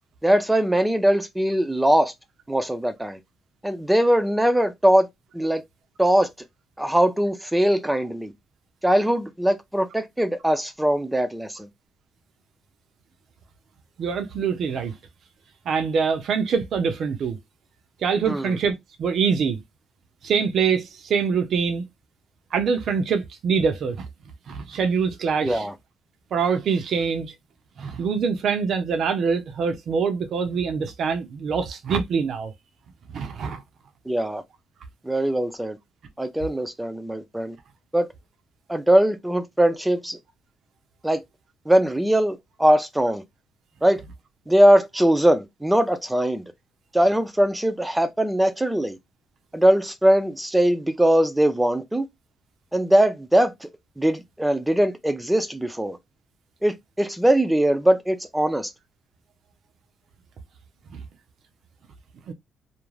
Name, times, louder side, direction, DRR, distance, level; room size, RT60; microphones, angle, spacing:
voice 1, 0.2-2.1 2.5-3.2 3.6-5.1 5.3-5.6 6.0-6.3 6.8-8.3 8.8-11.7 18.3-18.5 25.4-25.7 34.1-34.4 35.0-35.8 36.2-37.6 37.9-38.1 38.7-40.2 41.0-41.2 41.7-43.2 43.8-44.0 44.5-46.4 46.9-49.0 49.5-52.1 52.7-53.7 54.0-56.0 56.6-58.7, right 1 dB, 10° right, 0.4 m, -21 dB
voice 2, 14.0-14.9 15.7-17.4 18.0-19.6 20.2-21.9 22.5-24.1 24.5-25.7 26.3-27.3 27.8-32.5 33.1-33.6 60.9-61.0 62.3-62.4, right 6 dB, 65° right, 0.5 m, -24 dB
2.4 x 2.1 x 3.1 m
cardioid pair, 90°, 0 cm